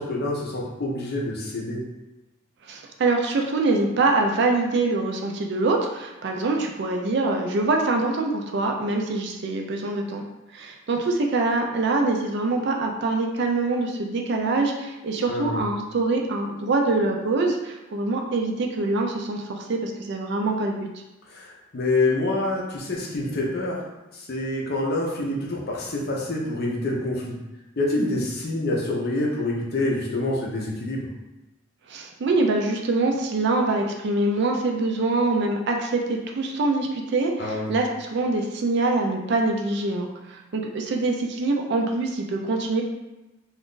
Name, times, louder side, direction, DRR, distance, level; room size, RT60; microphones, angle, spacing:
voice 1, 0.0-1.8 15.3-15.6 21.3-23.9 24.1-27.4 27.8-31.1 37.4-37.7, left 2 dB, 50° left, -2 dB, 0.6 m, -26 dB
voice 2, 2.7-10.2 10.5-20.9 31.9-42.8, right 3 dB, 55° right, 2 dB, 0.4 m, -24 dB
2.5 x 2.4 x 3.6 m, 1.0 s
head